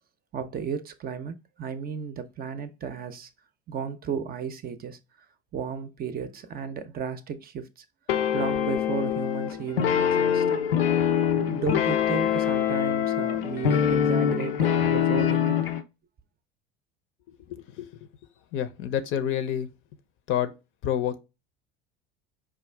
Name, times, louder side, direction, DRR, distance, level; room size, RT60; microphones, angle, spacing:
voice 1, 0.3-3.3 3.7-5.0 5.5-7.8 8.3-10.6 11.4-15.6, right 6 dB, 30° right, 0.6 m, -34 dB
sound 1, 8.1-15.8, left 9 dB, 80° left, 0.6 m, -24 dB
voice 2, 17.5-17.9 18.5-19.7 20.3-20.5 20.8-21.2, left 10 dB, 45° left, 0.6 m, -28 dB
4.8 x 2.4 x 3.3 m
hypercardioid pair, 80°, 29 cm